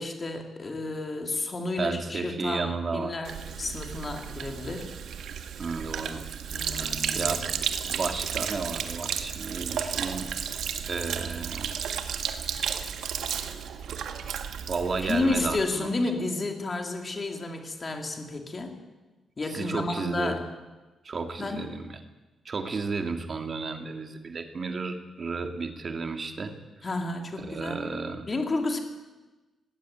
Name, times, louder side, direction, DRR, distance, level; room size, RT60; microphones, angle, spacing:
voice 1, 0.0-4.9 6.5-7.4 15.0-18.7 19.4-20.4 21.4-21.6 26.8-27.9 28.3-28.8, left 2 dB, 25° left, 4 dB, 3.0 m, -31 dB
voice 2, 1.8-3.1 5.6-6.2 6.8-10.3 10.9-11.7 14.7-15.9 19.5-20.4 21.0-22.0 22.5-26.6 27.4-28.3, right 4 dB, 35° right, 6 dB, 2.1 m, -33 dB
Sink (filling or washing), 3.2-15.6, right 8 dB, 75° right, 1.7 m, -33 dB
19.0 x 18.0 x 9.3 m, 1.2 s
wide cardioid pair, 155°, 0 cm